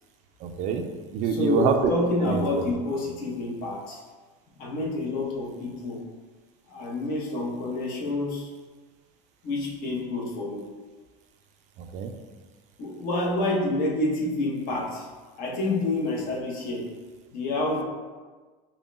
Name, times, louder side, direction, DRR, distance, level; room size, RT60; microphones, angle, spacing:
voice 1, 0.4-1.8 2.3-2.7 11.8-12.1, right 7 dB, 45° right, 5 dB, 0.4 m, -27 dB
voice 2, 1.2-4.0 4.6-6.1 6.7-8.5 9.4-10.7 12.8-15.1 15.4-16.9 17.3-17.8, left 2 dB, 55° left, -1 dB, 0.9 m, -28 dB
5.3 x 2.2 x 2.5 m, 1.3 s
cardioid pair, 140°, 18 cm